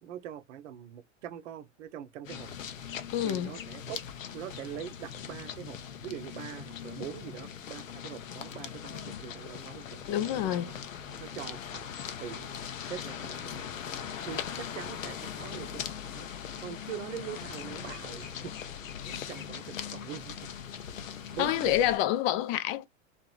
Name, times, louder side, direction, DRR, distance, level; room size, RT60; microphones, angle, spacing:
voice 1, 0.0-2.5 3.2-4.0 4.3-10.7 11.2-11.9 12.2-12.5 12.9-13.7 14.3-15.9 16.1-16.3 16.6-18.5 19.1-20.5 21.3-21.9, right 10 dB, 70° right, 0.7 m, -43 dB
sound 1, 2.2-22.0, left 8 dB, 85° left, 0.6 m, -40 dB
voice 2, 3.1-3.5 10.1-10.7 19.0-19.3 21.4-22.9, left 13 dB, 45° left, 0.6 m, -28 dB
2.8 x 2.5 x 2.3 m
hypercardioid pair, 95°, 38 cm